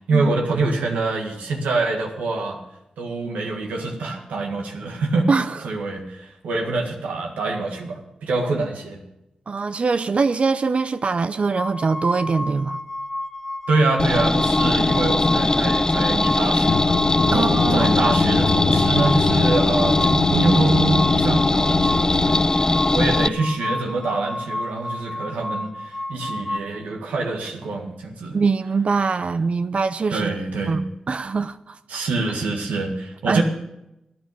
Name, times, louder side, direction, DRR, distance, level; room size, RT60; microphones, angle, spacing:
voice 1, 0.1-2.6 3.0-5.3 5.6-9.0 13.7-17.0 17.3-28.4 30.1-30.8 31.9-33.4, right 3 dB, 85° right, 1.8 m, -25 dB
voice 2, 5.3-5.6 9.5-12.8 17.3-18.0 28.3-30.3 30.7-32.0 33.3-33.4, right 4 dB, 55° right, 0.5 m, -23 dB
sound 1, 11.6-26.6, left 1 dB, 10° left, 1.7 m, -31 dB
sound 2, 14.0-23.3, left 2 dB, 25° left, 0.4 m, -20 dB
sound 3, 16.7-22.4, left 6 dB, 85° left, 0.8 m, -25 dB
13.5 x 9.4 x 6.8 m
supercardioid pair, 40°, 2 cm